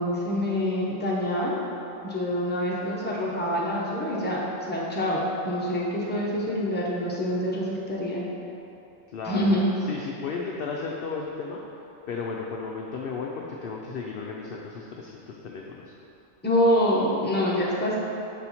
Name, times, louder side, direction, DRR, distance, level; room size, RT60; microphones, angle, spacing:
voice 1, 0.0-1.6 2.0-8.2 9.2-9.7 16.4-18.0, equal, 10° left, -6 dB, 0.7 m, -26 dB
voice 2, 9.1-9.6 9.9-11.6 12.1-15.8, left 4 dB, 65° left, -1 dB, 0.6 m, -34 dB
6.2 x 4.4 x 4.1 m, 3.0 s
omnidirectional pair, 1.3 m